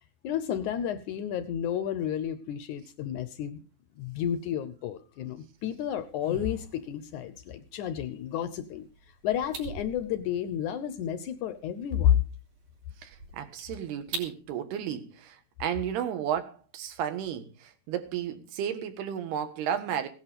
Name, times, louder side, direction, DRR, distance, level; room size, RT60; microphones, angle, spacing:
voice 1, 0.2-3.6 4.0-8.9 9.2-12.2, left 10 dB, 75° left, 1.8 m, -31 dB
sound 1, 5.6-14.4, right 2 dB, 65° right, 5.0 m, -45 dB
voice 2, 13.0-20.1, right 9 dB, 80° right, 3.6 m, -33 dB
17.0 x 11.0 x 5.2 m
omnidirectional pair, 4.6 m